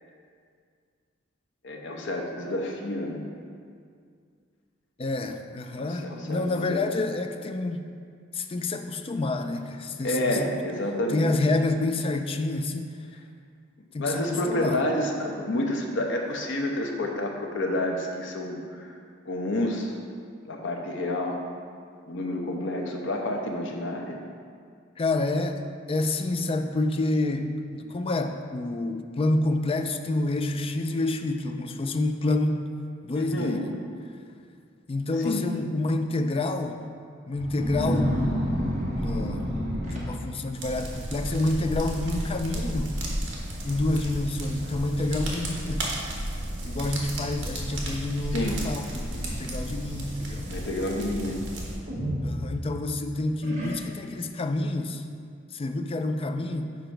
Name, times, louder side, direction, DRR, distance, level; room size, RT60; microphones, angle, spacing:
voice 1, 1.6-3.2 5.7-6.8 10.0-11.4 14.0-19.0 19.2-20.0 20.4-21.4 22.1-24.2 33.1-33.6 35.2-35.4 48.3-48.6 50.4-51.4, left 1 dB, 65° left, 1 dB, 0.9 m, -29 dB
voice 2, 5.0-7.8 8.3-10.5 11.1-12.9 13.9-14.8 25.0-32.7 33.0-33.6 34.9-36.9 37.3-38.3 38.9-39.4 39.8-43.0 43.6-45.9 46.6-50.5 52.2-55.0 55.5-56.8, left 2 dB, 30° left, 6 dB, 0.4 m, -28 dB
sound 1, 37.4-40.6 41.3-41.5 41.8-42.3 42.5-42.6 43.4-43.5 44.0-44.1 44.6-45.1 45.9-46.0 48.8-49.8 51.9-52.9 53.4-54.2, equal, 40° right, 1.4 m, -30 dB
sound 2, 40.6-51.8, right 1 dB, 65° right, 1.3 m, -33 dB
6.8 x 5.1 x 4.5 m, 2.2 s
head